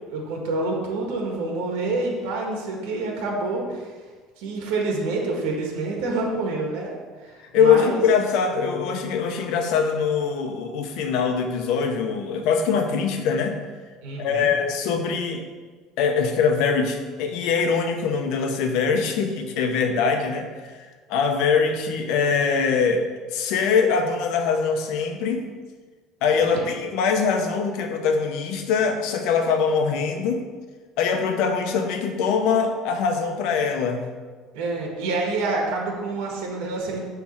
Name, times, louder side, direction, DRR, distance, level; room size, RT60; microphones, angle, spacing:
voice 1, 0.1-4.0 4.4-8.0 14.0-14.5 26.5-26.7 34.5-37.1, right 3 dB, 85° right, 0 dB, 1.5 m, -27 dB
voice 2, 7.5-13.6 14.2-15.4 16.0-25.4 26.2-30.4 31.0-34.1, left 5 dB, 70° left, 4 dB, 1.0 m, -23 dB
7.2 x 3.5 x 6.4 m, 1.5 s
cardioid pair, 135°, 0 cm